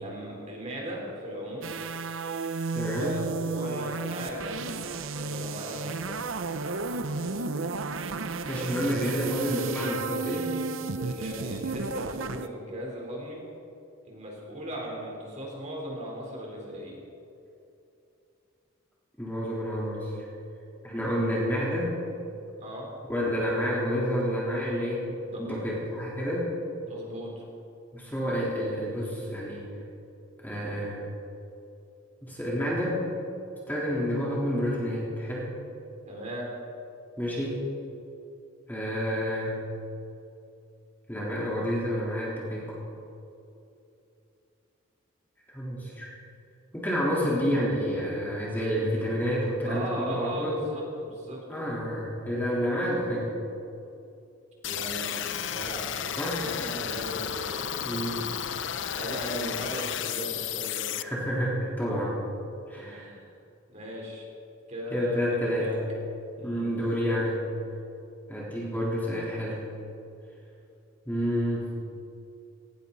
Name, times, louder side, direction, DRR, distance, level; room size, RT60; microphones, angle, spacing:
voice 1, 0.0-1.7 2.9-3.2 3.5-6.2 11.0-13.4 14.1-17.0 22.6-22.9 25.2-25.6 26.9-27.4 36.0-36.5 49.6-51.4 54.6-55.9 56.4-57.6 58.9-60.9 62.7-63.3 63.7-64.3 64.7-65.8 66.3-66.7, equal, 35° right, -2 dB, 4.0 m, -37 dB
sound 1, 1.6-12.5, right 4 dB, 80° right, 0.8 m, -33 dB
voice 2, 2.7-3.2 8.5-10.5 19.2-20.1 20.8-22.0 23.1-25.1 25.4-26.5 27.9-29.6 30.4-31.0 32.2-33.1 33.7-35.5 37.2-37.6 38.7-39.6 41.1-42.8 45.5-46.1 46.7-50.6 51.5-53.3 56.2-56.4 57.8-58.2 61.0-62.2 62.7-63.1 64.9-65.8 66.4-67.4 68.3-69.6 71.1-71.8, equal, 10° left, -6 dB, 3.6 m, -29 dB
sound 2, 54.6-61.0, left 9 dB, 60° left, 0.6 m, -33 dB
19.0 x 18.5 x 4.1 m, 2.7 s
head